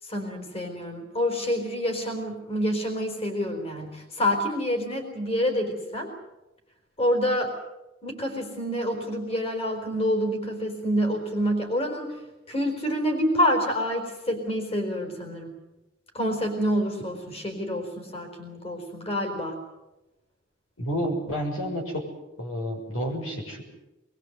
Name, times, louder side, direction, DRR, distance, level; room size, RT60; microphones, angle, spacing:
voice 1, 0.1-6.1 7.0-7.5 8.0-12.1 12.5-15.5 16.1-19.6, equal, 30° left, 4 dB, 4.2 m, -27 dB
voice 2, 20.8-22.0 22.4-23.6, equal, 90° left, 2 dB, 6.4 m, -30 dB
24.5 x 22.0 x 8.0 m, 1.0 s
head